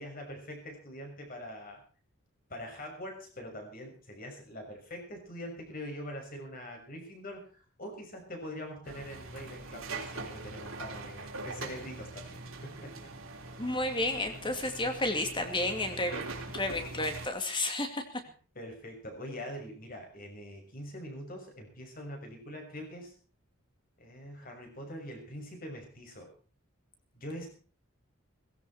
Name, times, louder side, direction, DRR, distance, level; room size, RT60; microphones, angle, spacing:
voice 1, 0.0-1.8 2.5-13.1 18.5-23.1 24.0-26.3 27.1-27.5, equal, 40° left, 2 dB, 6.5 m, -43 dB
sound 1, 8.8-17.3, right 3 dB, 75° right, 3.7 m, -42 dB
voice 2, 13.6-16.2 16.5-18.0, left 2 dB, 25° left, 6 dB, 2.4 m, -31 dB
18.5 x 16.0 x 4.4 m, 0.39 s
head